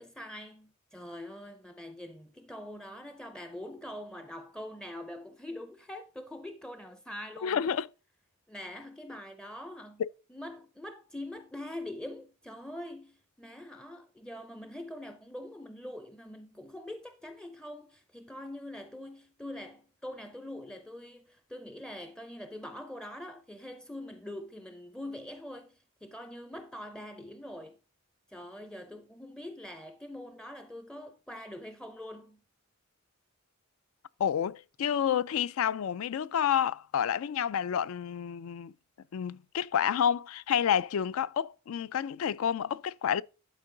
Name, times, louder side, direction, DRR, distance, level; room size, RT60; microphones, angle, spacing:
voice 1, 0.0-7.6 8.5-10.0 10.3-27.8 28.3-32.4, left 1 dB, 5° left, 0.4 m, -44 dB
voice 2, 7.4-7.9 10.0-10.1 34.2-38.7 39.1-43.2, left 8 dB, 75° left, 0.4 m, -29 dB
11.5 x 4.5 x 3.8 m
head